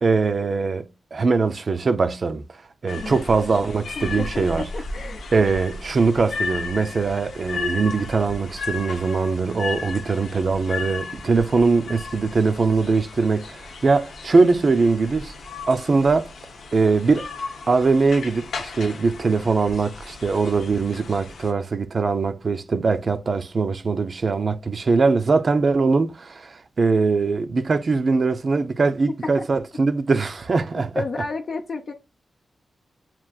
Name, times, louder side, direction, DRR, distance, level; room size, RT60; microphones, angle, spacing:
voice 1, 0.0-2.4 2.8-4.7 5.3-15.3 15.7-16.3 16.7-17.3 17.7-31.0, right 4 dB, 45° right, 0.4 m, -21 dB
sound 1, 2.9-21.5, left 4 dB, 90° left, 0.8 m, -35 dB
voice 2, 3.0-3.5 4.0-5.3 31.0-31.9, left 3 dB, 55° left, 0.5 m, -31 dB
7.3 x 2.4 x 2.3 m
wide cardioid pair, 105°, 0 cm